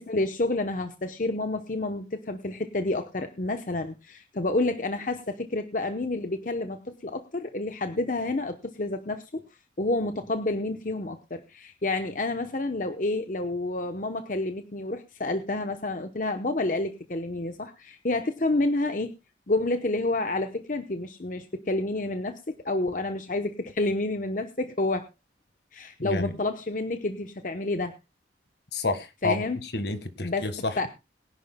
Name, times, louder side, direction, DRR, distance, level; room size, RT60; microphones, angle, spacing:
voice 1, 0.0-9.4 9.8-19.1 19.5-25.1 25.7-28.0 29.2-29.6 30.2-30.5 30.8-30.9, left 2 dB, 45° left, 0.9 m, -29 dB
voice 2, 26.0-26.3 28.7-29.4 29.7-30.9, left 2 dB, 70° left, 1.6 m, -29 dB
22.0 x 11.0 x 2.2 m
head